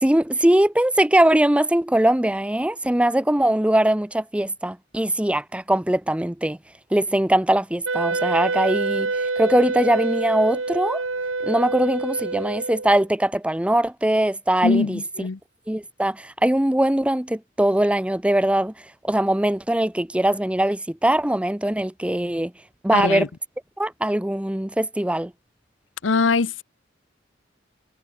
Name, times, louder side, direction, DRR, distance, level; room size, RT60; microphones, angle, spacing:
voice 1, 0.0-6.6 6.9-11.0 11.4-15.0 15.7-18.7 19.0-22.5 22.8-23.3 23.8-25.3, right 1 dB, 5° right, 0.6 m, -21 dB
Wind instrument woodwind instrument, 7.9-13.0, right 3 dB, 85° right, 2.2 m, -26 dB
voice 2, 14.6-15.4 22.9-23.3 26.0-26.6, left 4 dB, 70° left, 0.7 m, -22 dB
head